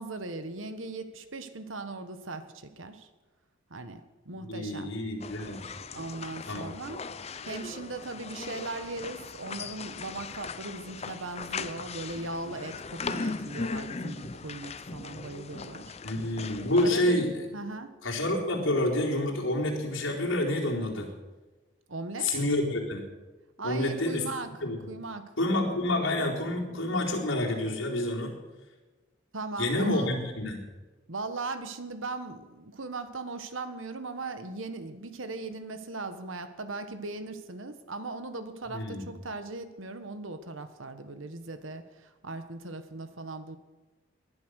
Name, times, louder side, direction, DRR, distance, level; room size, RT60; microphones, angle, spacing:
voice 1, 0.0-3.1 3.7-4.9 5.9-7.0 7.4-16.0 16.8-17.2 17.5-17.9 21.9-22.4 23.6-24.5 24.9-25.3 29.3-30.1 31.1-43.6, right 3 dB, 80° right, 10 dB, 1.4 m, -38 dB
voice 2, 4.4-5.6 6.5-6.6 16.0-17.3 18.0-21.1 22.2-23.0 23.6-24.2 24.6-24.8 25.4-28.3 29.6-30.6 38.7-39.0, left 1 dB, 80° left, -2 dB, 4.2 m, -28 dB
sound 1, 5.2-16.9, left 4 dB, 30° left, 0.6 m, -38 dB
19.5 x 11.5 x 6.5 m, 1.2 s
head